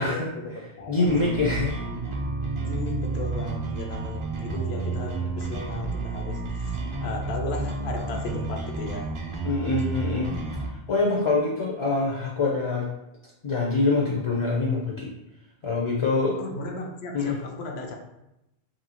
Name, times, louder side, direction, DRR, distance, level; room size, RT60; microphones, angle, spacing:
voice 1, 0.0-1.4 2.6-9.1 16.4-18.0, left 3 dB, 85° left, 2 dB, 0.9 m, -35 dB
voice 2, 0.9-1.8 9.4-10.3 10.7-12.9 13.4-15.1 15.6-16.4 17.1-17.4, left 3 dB, 45° left, -3 dB, 0.4 m, -25 dB
sound 1, 1.1-10.7, right 3 dB, 45° right, 0.4 m, -31 dB
sound 2, 2.2-8.5, right 16 dB, 60° right, 0.8 m, -39 dB
2.8 x 2.6 x 2.8 m, 0.88 s
omnidirectional pair, 1.0 m